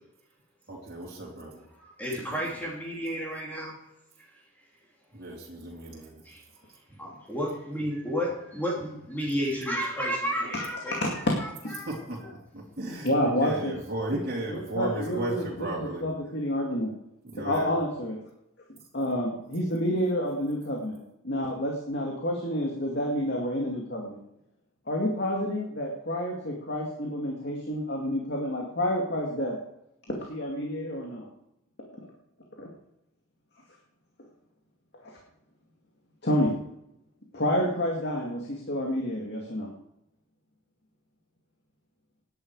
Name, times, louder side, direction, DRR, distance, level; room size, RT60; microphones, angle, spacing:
voice 1, 0.7-1.6 2.3-2.4 5.1-6.2 11.9-12.2 12.5-13.1 13.4-16.0 17.3-17.7, right 1 dB, 45° right, -5 dB, 3.7 m, -34 dB
voice 2, 1.8-3.8 6.2-6.4 7.0-11.2 11.7-12.3, equal, 10° left, -4 dB, 3.2 m, -32 dB
voice 3, 11.0-11.3 11.6-11.8 13.0-13.7 14.1-14.2 14.5-16.9 17.3-18.2 18.9-21.0 21.2-24.2 24.9-29.6 30.1-31.2 32.6-32.7 35.0-35.1 36.2-36.5 37.3-39.7, equal, 50° left, -1 dB, 2.3 m, -29 dB
17.0 x 10.5 x 4.9 m, 0.83 s
head